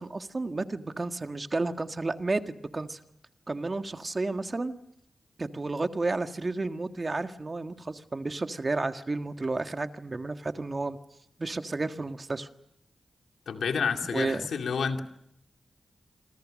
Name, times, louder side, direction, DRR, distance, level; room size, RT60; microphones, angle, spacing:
voice 1, 0.0-3.0 3.5-4.8 5.4-11.0 11.4-12.5 14.1-14.5, right 3 dB, 40° right, 7 dB, 1.7 m, -32 dB
voice 2, 13.5-15.0, left 6 dB, 90° left, 4 dB, 2.4 m, -29 dB
27.5 x 26.0 x 6.5 m, 0.81 s
cardioid pair, 55°, 0 cm